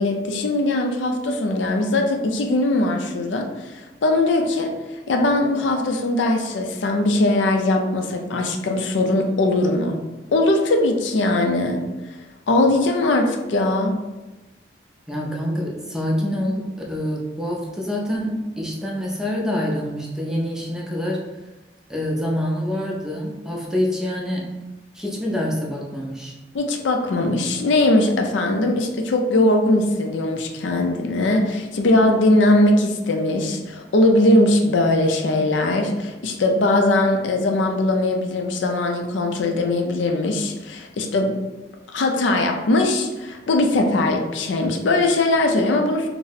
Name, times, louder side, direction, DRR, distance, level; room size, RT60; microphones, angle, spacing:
voice 1, 0.0-4.7 5.1-10.0 10.3-12.2 12.5-14.0 26.5-41.4 41.9-46.1, left 2 dB, 80° left, 3 dB, 0.4 m, -20 dB
voice 2, 15.1-21.2 21.9-24.5 24.9-26.3, equal, 5° right, -2 dB, 0.5 m, -26 dB
2.6 x 2.0 x 3.9 m, 1.1 s
head